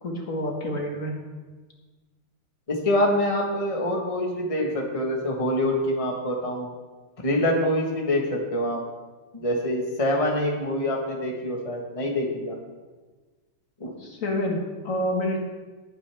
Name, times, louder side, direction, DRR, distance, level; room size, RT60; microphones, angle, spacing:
voice 1, 0.0-1.1 14.0-15.4, left 1 dB, 40° left, 0 dB, 2.0 m, -28 dB
voice 2, 2.7-6.7 7.2-8.8 9.3-12.6 13.8-13.9, left 1 dB, 20° left, 0 dB, 1.2 m, -25 dB
19.5 x 9.0 x 3.5 m, 1.3 s
omnidirectional pair, 2.3 m